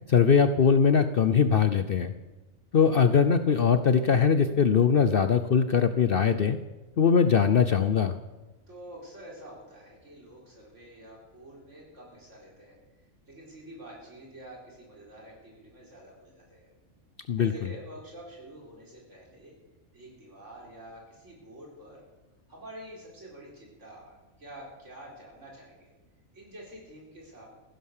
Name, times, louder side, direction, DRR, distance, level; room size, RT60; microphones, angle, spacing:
voice 1, 0.1-2.1 2.7-6.6 7.0-8.1 17.3-17.5, left 6 dB, 55° left, 10 dB, 0.7 m, -21 dB
voice 2, 8.7-12.8 13.3-16.7 17.4-19.5 19.9-22.0 22.5-25.9 26.3-27.5, right 1 dB, 60° right, -2 dB, 4.9 m, -48 dB
15.5 x 11.0 x 6.6 m, 1.1 s
omnidirectional pair, 1.4 m